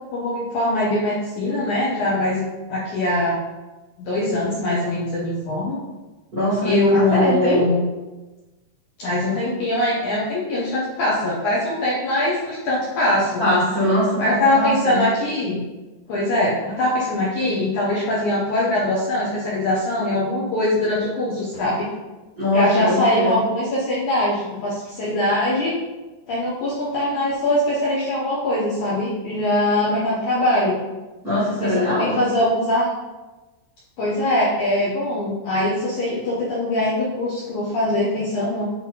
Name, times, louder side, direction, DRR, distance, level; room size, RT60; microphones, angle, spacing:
voice 1, 0.1-3.4 4.0-5.8 6.6-7.8 9.0-13.4 14.2-15.6 16.1-21.9 22.5-25.7 26.3-30.8 31.6-32.9 34.0-38.7, left 1 dB, 75° left, -7 dB, 1.8 m, -22 dB
voice 2, 6.3-7.7 13.4-15.0 22.4-23.4 31.2-32.2, equal, 80° right, -11 dB, 0.8 m, -21 dB
9.1 x 3.9 x 4.0 m, 1.1 s
omnidirectional pair, 5.4 m